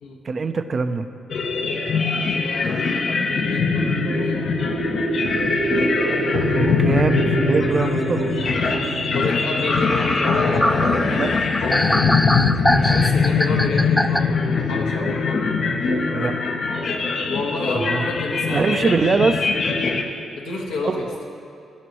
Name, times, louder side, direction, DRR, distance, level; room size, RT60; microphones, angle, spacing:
voice 1, 0.2-1.1 6.5-8.3 11.1-11.3 16.1-16.3 17.7-18.0 18.5-19.5 20.8-21.2, right 4 dB, 50° right, 10 dB, 0.5 m, -23 dB
sound 1, 1.3-20.0, left 4 dB, 60° left, 0.7 m, -22 dB
voice 2, 2.3-4.4 9.1-10.7 12.7-15.4 17.3-18.9 20.4-21.1, left 3 dB, 85° left, -1 dB, 1.3 m, -29 dB
sound 2, 3.3-11.4, right 3 dB, 70° right, 1.0 m, -28 dB
sound 3, 9.2-9.3 9.7-14.2, equal, 5° left, 0.4 m, -22 dB
17.0 x 6.0 x 3.0 m, 2.4 s
hypercardioid pair, 45°, 0 cm